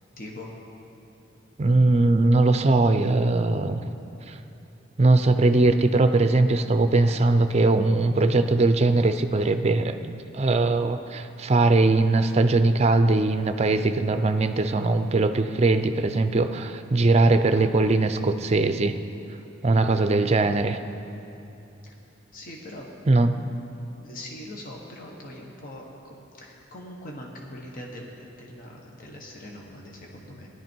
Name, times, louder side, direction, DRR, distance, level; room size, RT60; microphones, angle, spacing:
voice 1, 0.2-0.5 21.8-22.0 22.3-22.9 24.0-30.5, left 1 dB, 50° left, -1 dB, 1.4 m, -42 dB
voice 2, 1.6-3.8 4.3-4.4 5.0-19.0 19.6-20.8 23.1-23.4, right 2 dB, 35° right, 9 dB, 0.5 m, -20 dB
16.0 x 11.0 x 4.5 m, 2.9 s
head